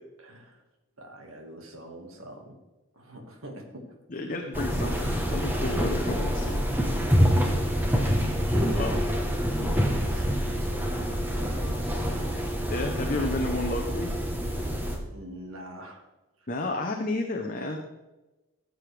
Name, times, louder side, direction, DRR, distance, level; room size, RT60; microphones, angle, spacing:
voice 1, 0.2-0.6 1.0-2.5 2.9-3.8 4.3-4.4 8.5-9.1 9.4-12.4 15.1-16.1, right 1 dB, 80° right, 2 dB, 1.9 m, -45 dB
voice 2, 4.1-6.7 8.7-9.0 12.7-14.1 16.5-17.8, left 2 dB, 40° left, 2 dB, 0.8 m, -31 dB
sound 1, 4.5-15.0, equal, 10° right, 1.1 m, -26 dB
14.5 x 7.8 x 3.4 m, 1.1 s
head